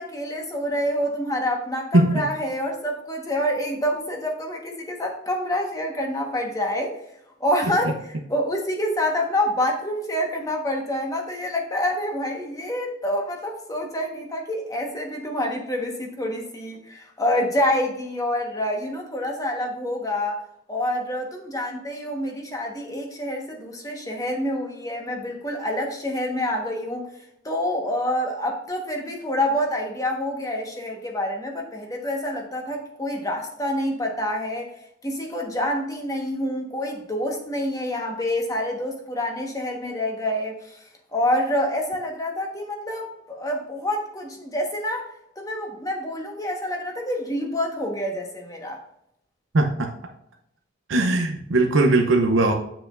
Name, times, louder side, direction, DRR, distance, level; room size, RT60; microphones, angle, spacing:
voice 1, 0.0-7.0 7.4-8.0 8.3-20.4 20.7-27.1 27.4-34.7 35.0-40.8 41.1-48.8, left 1 dB, 20° left, 1 dB, 1.4 m, -27 dB
voice 2, 49.5-49.9 50.9-52.5, right 2 dB, 85° right, 3 dB, 0.8 m, -19 dB
7.5 x 6.9 x 2.5 m, 0.77 s
head